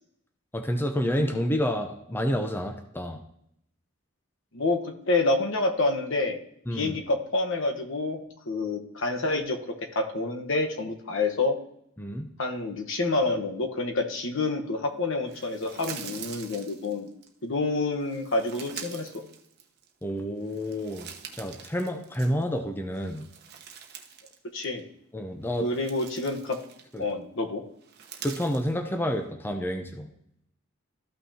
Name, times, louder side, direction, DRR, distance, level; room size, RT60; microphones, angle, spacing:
voice 1, 0.5-3.2 6.7-7.0 12.0-12.3 20.0-21.1 21.4-23.3 25.1-25.7 26.9-27.0 28.2-30.1, equal, 10° left, 5 dB, 0.6 m, -29 dB
voice 2, 4.5-6.4 6.7-11.6 12.4-17.1 17.4-19.1 24.5-24.8 25.6-26.6 27.0-27.6, left 2 dB, 65° left, 3 dB, 1.1 m, -28 dB
sound 1, 15.3-17.3 18.0-20.0 20.4-22.6 22.9-24.4 24.6-24.8 25.4-27.1 27.8-28.7, right 7 dB, 55° right, 1.0 m, -44 dB
14.0 x 5.9 x 2.8 m, 0.73 s
head